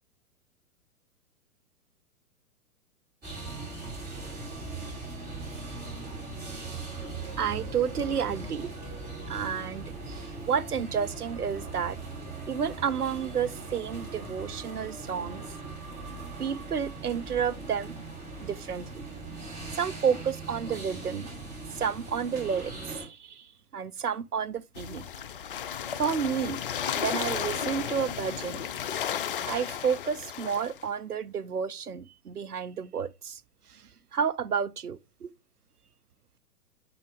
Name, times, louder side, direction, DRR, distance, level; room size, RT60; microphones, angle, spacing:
sound 1, 3.2-23.0, right 3 dB, 20° right, 4.2 m, -40 dB
voice 1, 7.4-8.7 9.3-12.0 12.5-15.6 16.4-18.1 18.4-19.0 19.4-21.3 21.7-25.0 26.0-26.6 26.9-28.7 29.5-33.4 33.7-35.3, right 7 dB, 85° right, 0.7 m, -31 dB
sound 2, 24.8-30.8, left 9 dB, 40° left, 0.4 m, -34 dB
8.7 x 3.8 x 3.4 m
figure-of-eight pair, 115°, 44 cm